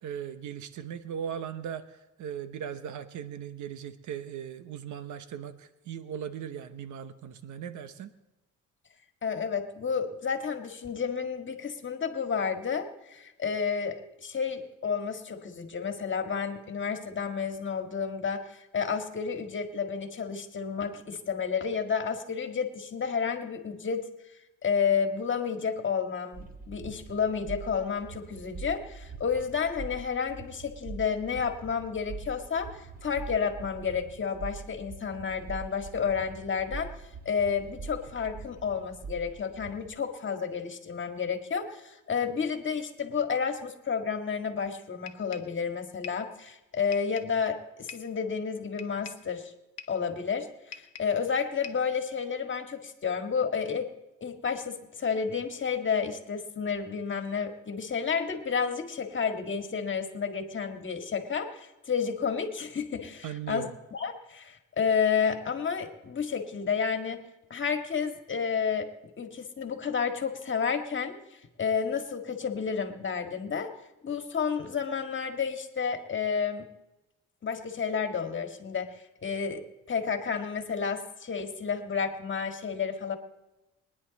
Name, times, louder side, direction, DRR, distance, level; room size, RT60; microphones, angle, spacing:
voice 1, 0.0-8.1 63.2-63.7, right 9 dB, 75° right, 12 dB, 1.0 m, -38 dB
voice 2, 9.2-24.1 24.6-36.9 37.3-49.5 49.9-53.9 54.2-67.2 67.5-68.9 69.2-71.2 71.6-73.7 74.0-76.7 77.4-83.2, left 6 dB, 40° left, 6 dB, 1.8 m, -31 dB
sound 1, 26.3-39.9, right 4 dB, 30° right, 1.6 m, -44 dB
sound 2, 45.1-45.6 46.0-46.3 46.9-47.4 47.9-48.2 48.8-49.3 49.8-50.1 50.7-51.2 51.6-51.9, left 8 dB, 60° left, 1.1 m, -45 dB
22.0 x 10.0 x 4.1 m, 0.98 s
cardioid pair, 90°, 30 cm